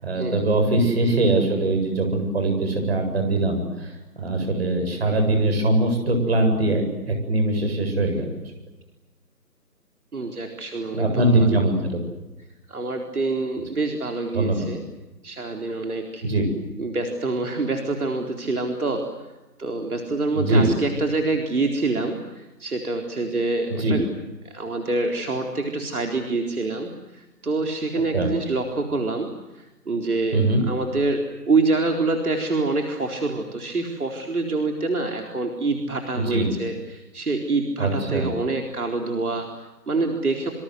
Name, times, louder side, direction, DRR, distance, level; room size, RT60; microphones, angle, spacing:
voice 1, 0.0-8.4 10.9-12.0 14.3-14.7 16.2-16.4 20.4-20.7 23.8-24.0 28.1-28.3 30.3-30.6 36.1-36.5 37.8-38.3, right 2 dB, 40° right, 4 dB, 7.9 m, -22 dB
voice 2, 10.1-11.7 12.7-14.8 15.2-16.2 16.8-19.0 19.6-24.1 24.4-29.3 29.5-40.5, right 3 dB, 65° right, 2 dB, 4.3 m, -26 dB
27.5 x 26.0 x 8.0 m, 1.1 s
figure-of-eight pair, 170°, 48 cm